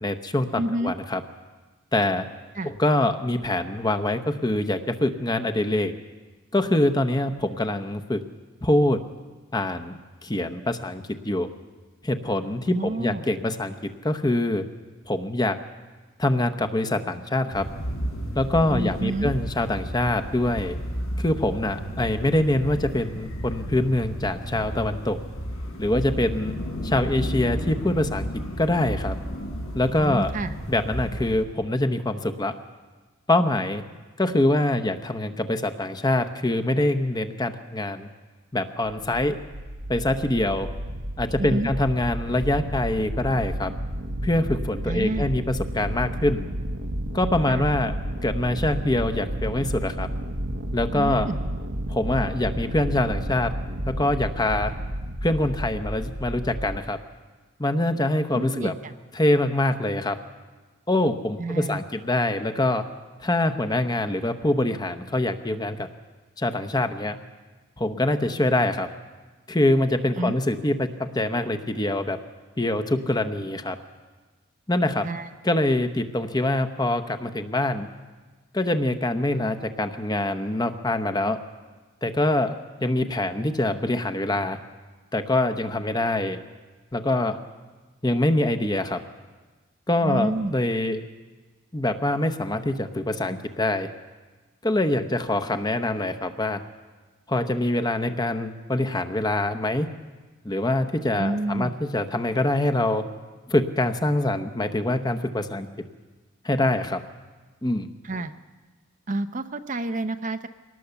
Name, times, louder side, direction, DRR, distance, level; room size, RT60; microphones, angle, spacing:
voice 1, 0.0-1.2 1.9-2.3 2.6-5.9 6.5-8.2 8.6-9.0 9.5-11.5 12.0-13.7 14.0-14.6 15.1-15.6 16.2-17.7 18.3-20.8 21.2-25.2 25.8-26.5 26.8-29.2 29.7-30.3 30.7-32.5 33.3-33.8 34.2-38.1 38.5-39.4 39.9-40.7 41.2-43.7 44.2-46.5 47.1-47.9 48.2-50.1 50.7-51.3 51.9-53.5 53.9-54.7 55.2-57.0 57.6-58.7 59.1-60.2 60.9-62.8 63.2-65.9 66.4-67.2 67.8-68.9 69.5-72.2 72.6-73.8 74.7-75.1 75.4-77.9 78.5-81.4 82.0-84.6 85.1-86.4 86.9-87.4 88.0-89.0 89.9-91.0 91.7-93.9 94.6-96.6 97.3-99.9 100.4-103.1 103.5-105.7 106.4-107.0 107.6-107.9, left 1 dB, 20° left, 8 dB, 0.9 m, -24 dB
voice 2, 0.6-0.9 2.6-2.7 12.7-13.2 18.7-19.3 30.0-30.5 41.4-41.7 44.9-45.3 47.5-47.7 50.9-51.4 58.3-58.9 61.4-61.8 70.2-70.3 75.0-75.3 90.0-90.5 101.2-101.7 108.0-108.3 109.1-110.5, right 2 dB, 35° right, 9 dB, 0.7 m, -28 dB
sound 1, 17.5-31.4, equal, 85° left, 5.0 m, -33 dB
sound 2, 39.1-56.8, right 1 dB, 65° right, 1.0 m, -31 dB
23.0 x 18.5 x 7.0 m, 1.3 s
head